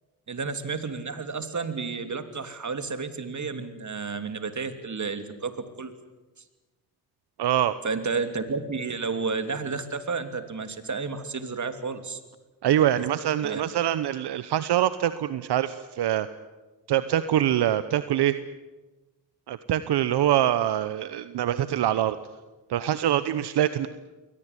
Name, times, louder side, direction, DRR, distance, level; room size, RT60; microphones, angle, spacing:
voice 1, 0.3-5.9 7.8-12.2 13.4-13.6, right 4 dB, 45° right, 9 dB, 3.1 m, -31 dB
voice 2, 7.4-7.8 12.6-16.3 16.9-18.4 19.5-22.2 22.7-23.9, right 11 dB, 75° right, 13 dB, 1.0 m, -24 dB
22.5 x 18.5 x 9.9 m, 1.1 s
supercardioid pair, 60°, 40 cm